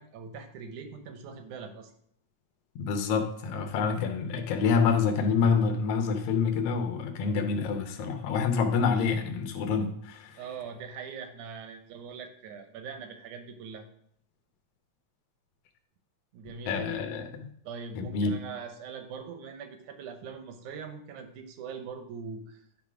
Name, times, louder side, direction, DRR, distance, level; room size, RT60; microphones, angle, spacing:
voice 1, 0.0-1.9 10.4-13.9 16.3-16.9 17.6-22.6, right 6 dB, 80° right, 7 dB, 2.3 m, -42 dB
voice 2, 2.8-10.4 16.7-17.5 18.0-18.3, left 5 dB, 70° left, 5 dB, 1.7 m, -27 dB
10.0 x 3.7 x 4.9 m, 0.68 s
omnidirectional pair, 3.4 m